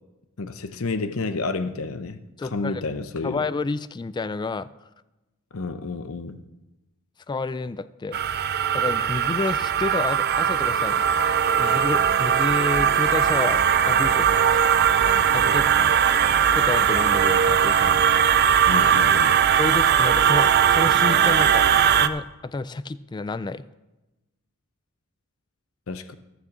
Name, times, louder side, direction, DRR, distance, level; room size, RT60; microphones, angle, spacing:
voice 1, 0.4-3.4 5.5-6.4 18.7-19.4 25.9-26.1, left 3 dB, 70° left, 0.8 m, -30 dB
voice 2, 2.4-2.8 3.2-4.7 7.3-8.2 8.7-11.0 11.6-14.6 15.3-15.7 16.5-18.0 19.5-23.6, left 3 dB, 20° left, 0.3 m, -30 dB
sound 1, 8.1-22.1, right 8 dB, 50° right, 0.5 m, -19 dB
14.5 x 6.2 x 7.2 m
head